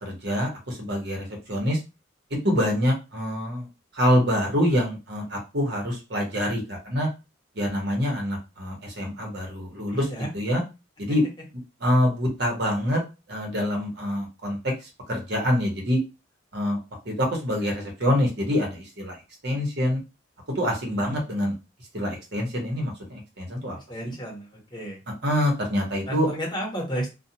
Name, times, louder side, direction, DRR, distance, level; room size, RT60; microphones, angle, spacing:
voice 1, 0.0-1.8 2.3-3.7 3.9-7.1 7.6-10.1 10.3-10.6 11.0-11.2 11.8-13.0 13.3-14.6 15.1-16.0 16.5-16.8 17.0-19.2 19.4-20.0 20.5-21.5 21.9-23.8 25.2-26.3, equal, 60° right, 0 dB, 1.0 m, -25 dB
voice 2, 9.9-10.3 11.1-11.2 20.9-21.2 23.9-25.0 26.0-27.1, right 1 dB, 25° left, -2 dB, 1.1 m, -32 dB
2.4 x 2.2 x 2.8 m, 0.27 s
head